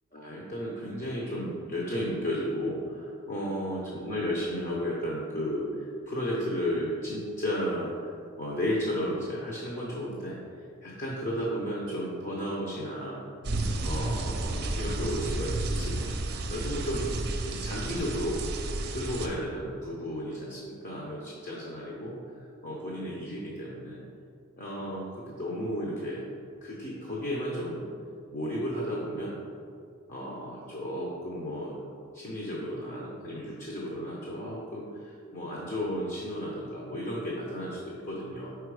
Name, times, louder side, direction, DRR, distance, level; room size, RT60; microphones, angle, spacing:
voice 1, 0.1-8.1 8.4-10.4 10.8-13.2 13.8-16.2 16.5-17.1 17.4-18.4 18.9-24.0 24.6-26.2 26.6-27.9 28.3-29.3 30.1-31.8 32.1-38.5, equal, 35° left, -4 dB, 0.9 m, -33 dB
sound 1, 13.4-19.3, right 2 dB, 45° right, 0.6 m, -32 dB
5.7 x 4.8 x 4.8 m, 2.3 s
head